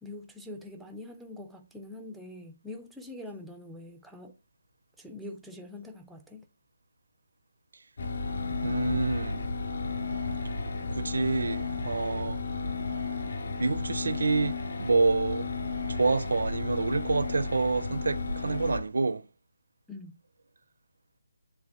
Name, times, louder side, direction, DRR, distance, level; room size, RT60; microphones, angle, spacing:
voice 1, 0.0-4.3 5.0-6.4 19.9-20.1, left 2 dB, ahead, 0.4 m, -44 dB
sound 1, 8.0-18.8, left 4 dB, 50° left, 2.5 m, -33 dB
voice 2, 8.6-9.5 10.9-12.4 13.6-15.5 15.9-19.3, right 3 dB, 65° right, 0.5 m, -28 dB
9.4 x 3.5 x 3.0 m
hypercardioid pair, 175°, 0 cm